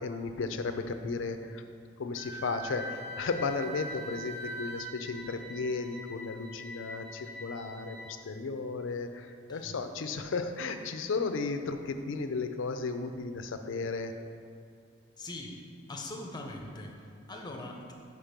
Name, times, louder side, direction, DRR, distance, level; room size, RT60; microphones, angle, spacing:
voice 1, 0.0-1.6 2.0-8.0 8.2-14.1, left 4 dB, 65° left, 8 dB, 0.4 m, -34 dB
Wind instrument woodwind instrument, 2.2-5.0, right 1 dB, 30° right, 0.4 m, -41 dB
sound 1, 2.7-8.1, left 1 dB, 50° right, 0.7 m, -47 dB
voice 2, 15.2-15.6 15.9-17.9, left 2 dB, 20° left, 1 dB, 0.7 m, -42 dB
5.1 x 4.8 x 5.9 m, 2.5 s
head